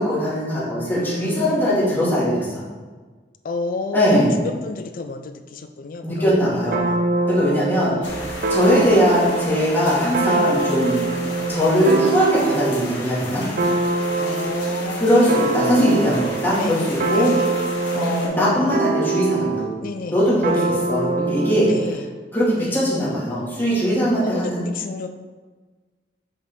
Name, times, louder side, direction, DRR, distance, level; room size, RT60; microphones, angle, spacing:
voice 1, 0.0-2.7 3.9-4.3 6.0-6.8 7.3-11.0 11.5-13.5 15.0-16.8 17.1-17.3 17.9-19.7 20.1-20.6 20.9-21.7 22.3-24.7, equal, 10° left, -8 dB, 2.1 m, -20 dB
voice 2, 0.9-2.2 3.4-7.0 7.6-8.3 8.6-9.0 10.2-10.6 11.4-11.6 14.2-15.5 16.6-17.5 17.9-18.7 19.8-20.2 20.5-20.8 21.7-22.1 22.6-22.7 24.2-25.1, left 3 dB, 50° left, 7 dB, 0.4 m, -32 dB
sound 1, 6.7-12.9 13.6-19.8 20.4-21.9, right 3 dB, 50° right, 0.5 m, -24 dB
sound 2, 8.0-18.3, left 2 dB, 90° left, 1.8 m, -34 dB
6.4 x 5.1 x 3.6 m, 1.4 s
head